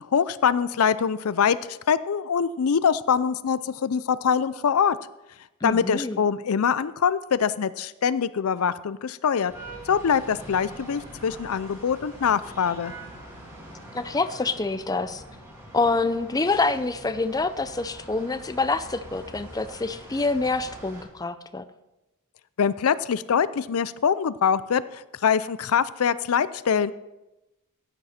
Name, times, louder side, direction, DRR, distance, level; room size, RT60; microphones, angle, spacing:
voice 1, 0.1-5.0 5.6-9.5 9.9-12.9 22.6-26.9, left 7 dB, 75° left, 16 dB, 0.5 m, -24 dB
voice 2, 5.6-6.2 13.9-15.2 15.7-21.6, left 3 dB, 15° left, 11 dB, 0.5 m, -26 dB
sound 1, 9.5-21.0, right 1 dB, 10° right, 3.4 m, -44 dB
15.5 x 9.1 x 4.3 m, 0.98 s
head